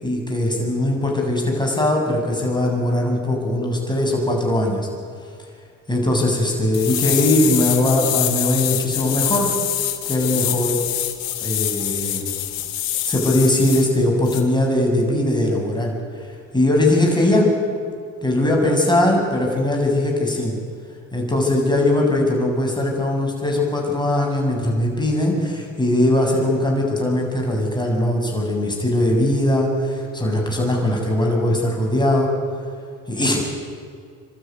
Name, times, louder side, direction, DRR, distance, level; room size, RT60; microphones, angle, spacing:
voice 1, 0.0-4.9 5.9-9.5 10.1-10.8 11.4-12.2 13.1-15.9 16.5-17.5 18.2-20.6 21.1-32.3 33.1-33.4, left 1 dB, 10° left, 0 dB, 7.5 m, -20 dB
sound 1, 6.7-13.9 14.3-14.4, left 12 dB, 85° left, 1.7 m, -25 dB
27.0 x 12.5 x 9.6 m, 2.2 s
supercardioid pair, 60°, 34 cm